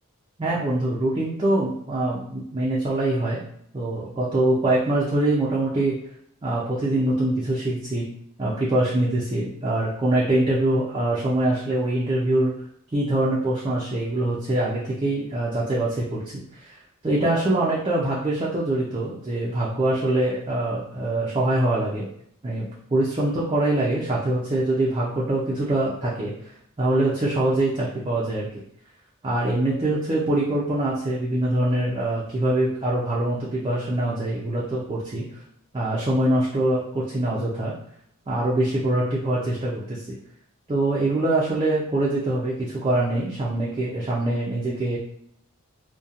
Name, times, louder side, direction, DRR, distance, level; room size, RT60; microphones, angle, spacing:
voice 1, 0.4-3.4 3.7-6.0 6.4-8.1 8.4-12.6 12.9-16.2 16.5-16.8 17.0-22.1 22.4-26.3 26.8-28.5 29.2-35.2 35.7-37.7 38.3-40.0 40.7-45.0, right 1 dB, 25° right, -6 dB, 0.4 m, -24 dB
2.7 x 2.2 x 2.4 m, 0.68 s
head